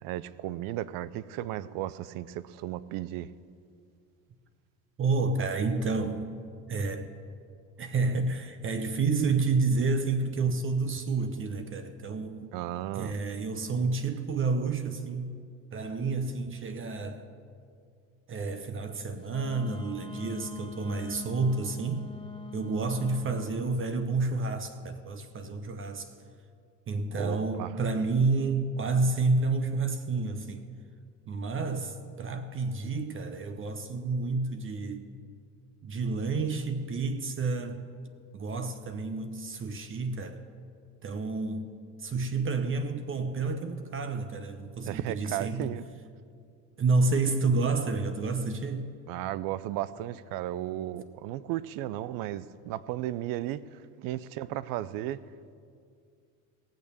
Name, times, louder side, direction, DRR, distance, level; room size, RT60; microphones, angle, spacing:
voice 1, 0.0-3.3 12.5-13.1 27.1-27.7 44.9-45.8 49.1-55.2, right 13 dB, 70° right, 0.6 m, -35 dB
voice 2, 5.0-6.3 6.7-7.1 7.8-12.5 12.9-15.3 15.7-17.3 18.3-22.1 22.5-26.1 26.9-30.6 31.3-35.1 35.8-37.8 38.3-40.4 41.0-41.7 42.0-45.7 46.8-48.9, right 3 dB, 35° right, 0.9 m, -29 dB
Wind instrument woodwind instrument, 19.3-23.7, left 5 dB, 15° left, 1.7 m, -43 dB
17.5 x 6.7 x 6.9 m
supercardioid pair, 90°, 36 cm